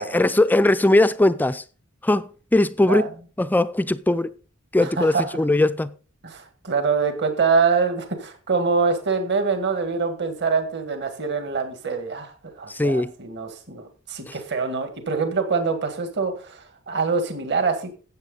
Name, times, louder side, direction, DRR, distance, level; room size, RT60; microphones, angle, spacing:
voice 1, 0.0-1.6 2.0-3.1 3.4-4.3 4.7-5.9 12.7-13.1 14.3-14.4, left 2 dB, 10° left, 0.4 m, -20 dB
voice 2, 4.8-5.2 6.2-17.9, right 5 dB, 55° right, 1.8 m, -25 dB
13.5 x 8.2 x 3.9 m
head